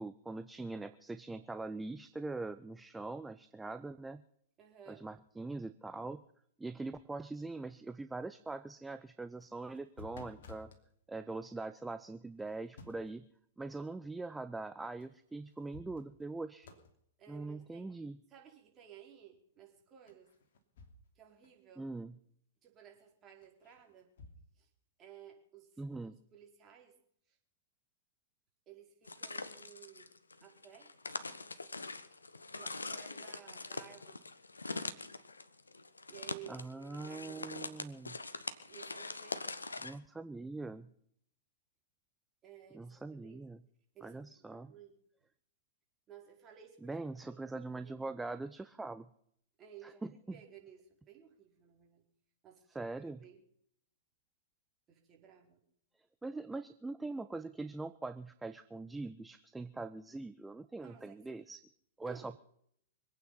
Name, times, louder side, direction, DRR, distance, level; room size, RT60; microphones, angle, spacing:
voice 1, 0.0-4.2 4.9-6.2 6.6-10.7 11.1-13.2 13.6-16.7 17.3-18.2 21.8-22.2 25.8-26.2 36.5-38.2 39.8-40.9 42.7-43.6 44.0-44.7 46.8-49.1 49.8-50.4 52.7-53.2 56.2-61.6 62.0-62.4, right 3 dB, 10° right, 11 dB, 0.7 m, -42 dB
voice 2, 4.6-5.0 17.2-17.9 18.3-20.3 21.1-21.9 22.6-24.1 24.6-24.7 25.0-26.9 27.3-27.4 28.7-30.1 30.4-30.9 32.5-34.3 36.1-37.7 38.7-39.4 42.4-43.4 43.9-44.9 46.1-47.0 47.3-47.5 47.8-48.1 49.6-50.0 50.3-52.1 52.4-52.9 53.2-53.4 54.9-55.6 60.8-61.4 62.0-62.3, right 9 dB, 25° right, 1 dB, 4.9 m, -56 dB
sound 1, 9.4-10.8 12.4-13.2 15.0-15.1 15.5-16.3 16.6-17.0 20.1-21.2 21.4-21.5 23.4-24.4, left 3 dB, 60° left, 3.0 m, -55 dB
sound 2, 29.1-40.0, left 3 dB, 85° left, 1.1 m, -43 dB
25.0 x 9.2 x 5.7 m, 0.67 s
figure-of-eight pair, 105°, 0 cm